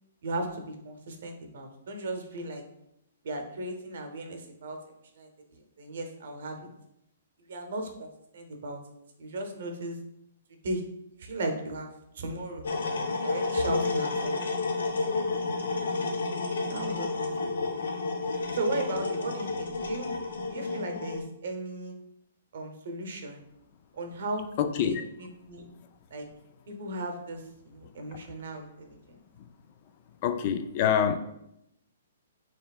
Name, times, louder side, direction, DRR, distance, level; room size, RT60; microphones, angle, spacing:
voice 1, 0.2-2.6 3.2-4.8 5.2-6.7 7.5-8.8 9.2-10.0 10.6-10.8 11.2-11.9 12.1-12.7 13.2-14.5 15.5-15.7 16.7-17.6 18.5-20.1 20.5-21.9 22.5-23.4 23.9-25.7 26.1-26.3 26.7-29.2, right 2 dB, 65° right, 4 dB, 0.7 m, -36 dB
sound 1, 12.6-21.2, left 3 dB, 80° left, 0.6 m, -30 dB
voice 2, 24.6-25.0 30.2-31.2, left 8 dB, 40° left, 8 dB, 0.3 m, -25 dB
4.7 x 3.0 x 2.4 m, 0.81 s
hypercardioid pair, 145°, 0 cm